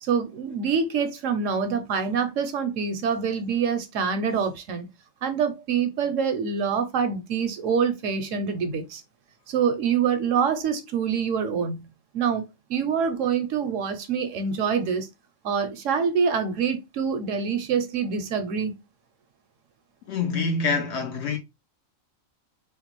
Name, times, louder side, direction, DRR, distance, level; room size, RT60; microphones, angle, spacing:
voice 1, 0.0-4.9 5.2-9.0 9.5-11.9 12.1-15.1 15.4-18.7, right 6 dB, 70° right, 0.9 m, -25 dB
voice 2, 20.1-21.4, left 4 dB, 65° left, 0.8 m, -26 dB
3.6 x 2.3 x 3.0 m
omnidirectional pair, 1.4 m